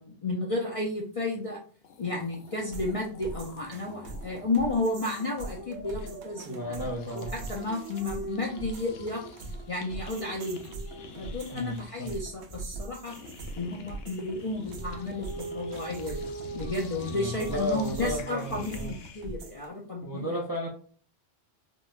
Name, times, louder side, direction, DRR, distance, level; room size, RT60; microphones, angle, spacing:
voice 1, 0.0-1.6 2.0-9.2 9.7-10.8 11.2-13.2 13.6-20.4, left 2 dB, 50° left, -2 dB, 0.4 m, -32 dB
sound 1, 1.5-1.6 1.8-8.0 8.3-19.4, left 4 dB, 70° left, 0.8 m, -48 dB
sound 2, 2.5-19.7, right 3 dB, 75° right, 0.8 m, -42 dB
Dog, 5.5-11.3 14.5-19.1, right 2 dB, 60° right, 1.2 m, -44 dB
voice 2, 6.4-7.5 11.5-12.1 17.1-18.9 20.0-20.7, equal, 35° right, -2 dB, 0.3 m, -34 dB
3.9 x 2.1 x 2.3 m, 0.43 s
omnidirectional pair, 1.1 m